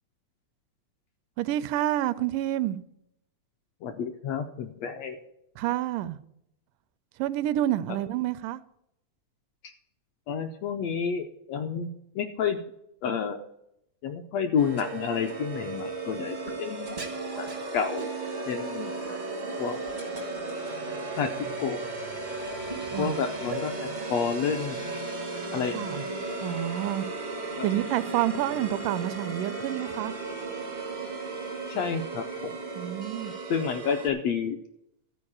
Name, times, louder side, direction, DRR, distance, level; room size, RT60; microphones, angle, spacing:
voice 1, 1.4-2.8 5.6-6.2 7.2-8.6 22.9-23.2 25.7-26.0 26.4-27.1 27.6-30.1 32.8-33.3, right 13 dB, 90° right, 2.2 m, -28 dB
voice 2, 3.8-5.2 10.3-11.9 12.1-12.6 13.0-13.4 14.0-17.0 17.4-17.5 17.7-18.1 18.5-19.2 19.6-19.8 21.2-21.3 21.6-21.8 23.0-24.9 25.5-26.4 27.6-27.7 31.7-32.5 33.5-34.6, left 7 dB, 80° left, 1.5 m, -30 dB
sound 1, 14.6-34.1, right 3 dB, 70° right, 0.4 m, -35 dB
12.5 x 4.7 x 8.6 m
omnidirectional pair, 3.6 m